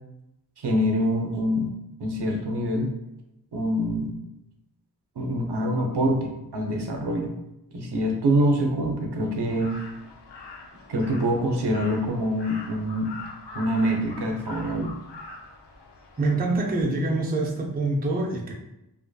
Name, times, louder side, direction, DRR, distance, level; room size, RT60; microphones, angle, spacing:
voice 1, 0.6-1.7 2.0-2.9 3.5-4.1 5.2-7.3 7.7-9.8 10.9-13.1 13.5-14.9, equal, 70° right, 2 dB, 0.6 m, -25 dB
Crow, 9.4-16.8, left 3 dB, 75° left, 0.5 m, -43 dB
voice 2, 16.2-18.5, right 2 dB, 25° right, 0 dB, 0.4 m, -25 dB
2.5 x 2.5 x 2.2 m, 0.87 s
wide cardioid pair, 60°, 42 cm